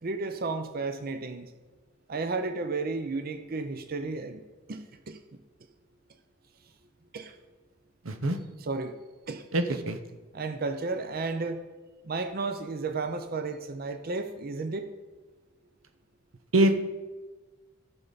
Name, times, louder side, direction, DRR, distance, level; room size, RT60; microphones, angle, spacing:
voice 1, 0.0-1.5 2.1-4.4 4.7-5.4 7.1-7.3 8.6-8.9 9.3-9.8 10.3-11.6 12.0-14.9, right 3 dB, 50° right, 8 dB, 0.6 m, -33 dB
voice 2, 8.1-8.4 9.5-10.0 16.5-16.8, right 1 dB, 90° right, 8 dB, 0.9 m, -23 dB
14.0 x 6.9 x 4.0 m, 1.3 s
head